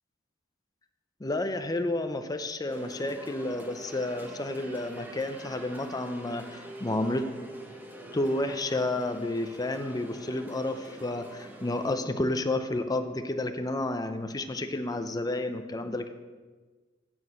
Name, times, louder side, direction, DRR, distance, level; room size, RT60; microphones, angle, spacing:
voice 1, 1.2-7.2 8.1-16.1, left 2 dB, 20° left, 7 dB, 0.6 m, -31 dB
sound 1, 2.7-11.9, right 1 dB, 10° right, 0.9 m, -45 dB
7.4 x 6.2 x 7.6 m, 1.3 s
head